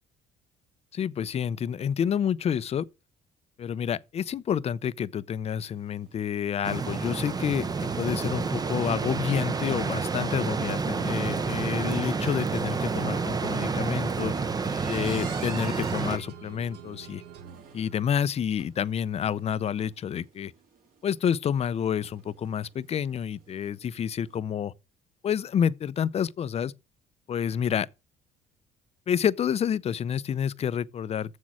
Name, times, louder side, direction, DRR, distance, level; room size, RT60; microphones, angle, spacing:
voice 1, 0.9-2.9 3.6-14.3 14.9-17.2 17.7-20.5 21.0-24.7 25.2-26.7 27.3-27.9 29.1-31.4, left 8 dB, 40° left, 0.5 m, -29 dB
sound 1, 5.7-24.3, right 5 dB, 60° right, 2.8 m, -50 dB
sound 2, 6.6-16.2, right 4 dB, 25° right, 0.6 m, -29 dB
sound 3, 7.7-18.4, right 6 dB, 75° right, 1.3 m, -48 dB
7.3 x 6.3 x 6.0 m
cardioid pair, 110°, 17 cm